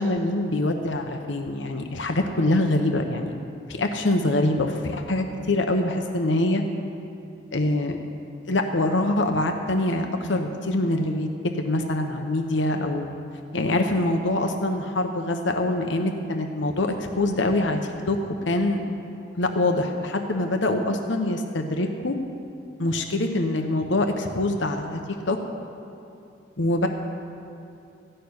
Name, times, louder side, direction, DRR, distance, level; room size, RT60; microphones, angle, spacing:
voice 1, 0.0-3.3 3.7-6.6 7.5-8.0 8.5-11.3 11.6-13.2 13.5-17.8 18.1-18.8 19.4-22.2 22.8-25.0 25.3-25.4 26.6-26.9, left 1 dB, 80° left, 4 dB, 1.0 m, -24 dB
14.5 x 6.7 x 9.7 m, 2.6 s
head